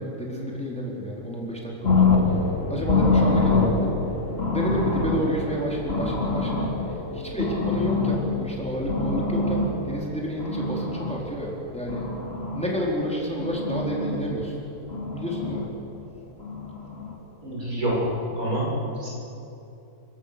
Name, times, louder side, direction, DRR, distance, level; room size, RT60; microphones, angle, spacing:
voice 1, 0.0-2.4 2.7-4.0 4.5-6.7 7.1-12.0 12.5-14.5 15.1-15.6, equal, 5° left, -3 dB, 4.1 m, -30 dB
sound 1, 1.8-11.1 11.6-12.7 13.1-14.2 14.9-15.6 16.4-17.1 17.9-18.2, left 3 dB, 45° left, 3.2 m, -25 dB
voice 2, 17.4-19.1, equal, 80° right, -4 dB, 6.6 m, -27 dB
29.0 x 17.0 x 7.0 m, 2.8 s
omnidirectional pair, 1.5 m